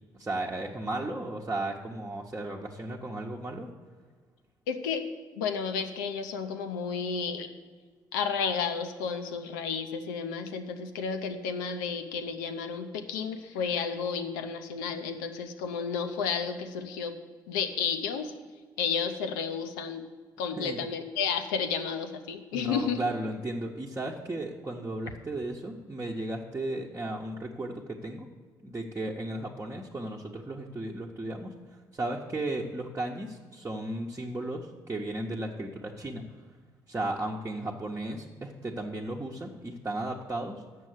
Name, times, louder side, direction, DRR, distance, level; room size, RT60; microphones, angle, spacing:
voice 1, 0.2-3.7 20.6-20.8 22.5-28.3 28.6-31.5 31.9-36.2 36.9-40.6, right 2 dB, 20° right, -3 dB, 1.0 m, -35 dB
voice 2, 4.7-5.0 5.3-7.5 8.1-17.1 17.5-18.3 18.8-20.0 20.4-23.0, left 6 dB, 85° left, 7 dB, 0.7 m, -32 dB
7.5 x 6.3 x 7.9 m, 1.5 s
hypercardioid pair, 50°, 10 cm